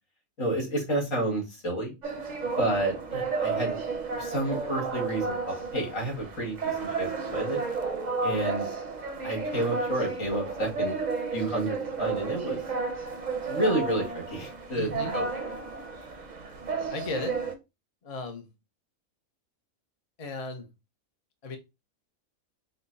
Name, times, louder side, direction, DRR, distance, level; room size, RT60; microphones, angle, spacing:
voice 1, 0.4-1.9 2.6-3.8 4.1-7.6 8.2-8.7 9.2-11.0 11.3-12.6 13.4-15.5, right 1 dB, 75° left, 2.6 m, -30 dB
sound 1, 2.0-17.5, right 4 dB, 40° right, 0.7 m, -32 dB
voice 2, 14.7-15.2 16.9-17.4 18.0-18.5 20.2-20.7 21.4-21.6, left 3 dB, 35° left, 0.6 m, -35 dB
5.4 x 2.1 x 3.9 m
omnidirectional pair, 1.4 m